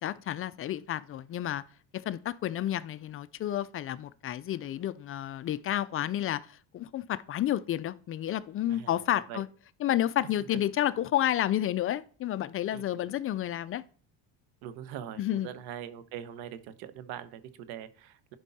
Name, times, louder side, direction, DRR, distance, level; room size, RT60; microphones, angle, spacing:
voice 1, 0.0-1.6 1.9-6.5 6.7-9.5 9.8-13.8 15.2-15.5, left 12 dB, 35° left, 0.4 m, -30 dB
voice 2, 8.7-9.4 10.5-10.6 12.7-13.1 14.6-18.4, right 10 dB, 80° right, 1.1 m, -43 dB
11.0 x 5.4 x 4.1 m
cardioid pair, 125°, 37 cm